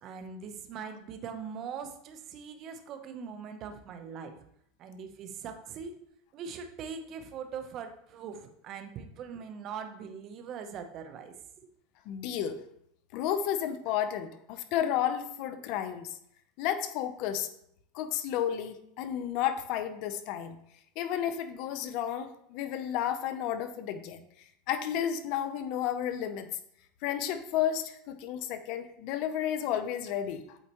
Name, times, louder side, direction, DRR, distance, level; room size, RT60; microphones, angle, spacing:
voice 1, 0.0-4.3 4.8-5.9 6.3-11.7, right 6 dB, 40° right, 7 dB, 0.8 m, -41 dB
voice 2, 12.1-12.6 13.1-16.2 16.6-17.5 17.9-20.6 21.0-24.2 24.7-26.5 27.0-30.6, left 10 dB, 55° left, 10 dB, 0.6 m, -32 dB
8.1 x 4.3 x 3.0 m, 0.71 s
supercardioid pair, 130°, 0 cm